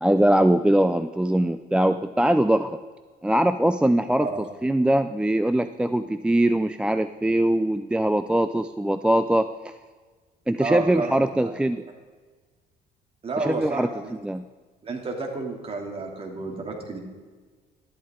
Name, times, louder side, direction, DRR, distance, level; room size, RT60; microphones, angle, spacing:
voice 1, 0.0-2.8 3.2-4.3 4.6-9.7 10.5-11.8 13.4-13.9 14.2-14.4, right 1 dB, 5° right, 10 dB, 0.3 m, -22 dB
voice 2, 10.6-11.5 13.2-14.2 14.8-17.0, right 3 dB, 35° right, 1 dB, 2.7 m, -31 dB
13.0 x 12.0 x 3.7 m, 1.4 s
cardioid pair, 110°, 17 cm